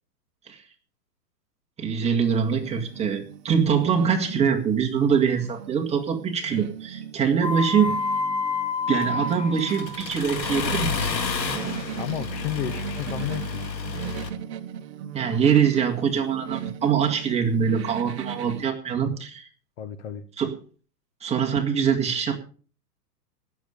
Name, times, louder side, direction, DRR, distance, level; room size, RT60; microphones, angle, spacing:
voice 1, 1.8-8.0 8.9-11.1 15.1-19.4 20.4-20.6 21.2-22.4, right 7 dB, 15° right, 1 dB, 1.9 m, -23 dB
sound 1, 2.2-18.7, right 9 dB, 40° right, 1.2 m, -38 dB
sound 2, 7.4-10.0, left 4 dB, 10° left, 3.6 m, -28 dB
Accelerating revving vroom, 9.0-14.3, left 5 dB, 85° left, 2.6 m, -31 dB
voice 2, 11.8-13.6 19.0-19.2 19.8-20.2, left 10 dB, 40° left, 11 dB, 1.2 m, -32 dB
19.0 x 7.5 x 5.2 m, 0.40 s
hypercardioid pair, 135°, 50 cm